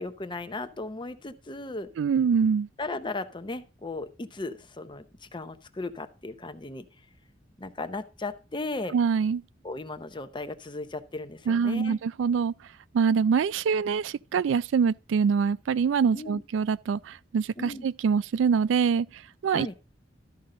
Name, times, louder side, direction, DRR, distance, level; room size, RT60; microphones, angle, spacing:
voice 1, 0.0-1.9 2.8-6.8 7.6-9.0 9.6-12.0 16.1-16.4 17.6-17.9 19.5-19.7, left 2 dB, 25° left, 0.7 m, -36 dB
voice 2, 2.0-2.7 8.9-9.4 11.5-12.5 12.9-19.7, right 6 dB, 90° right, 0.3 m, -25 dB
13.0 x 5.4 x 3.8 m
head